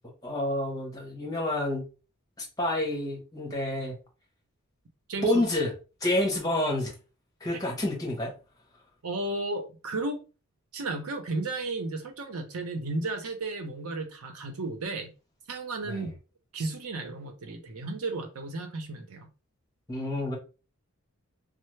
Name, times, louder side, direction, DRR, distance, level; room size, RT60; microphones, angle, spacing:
voice 1, 0.2-1.9 2.4-3.9 5.2-5.7 6.0-6.9 7.4-8.3 15.9-16.1 19.9-20.4, left 1 dB, 15° left, 1.0 m, -28 dB
voice 2, 5.1-5.4 7.5-7.6 9.0-10.2 10.7-15.1 15.5-16.1 16.5-19.3, right 2 dB, 85° right, 0.7 m, -34 dB
3.2 x 2.0 x 3.2 m
head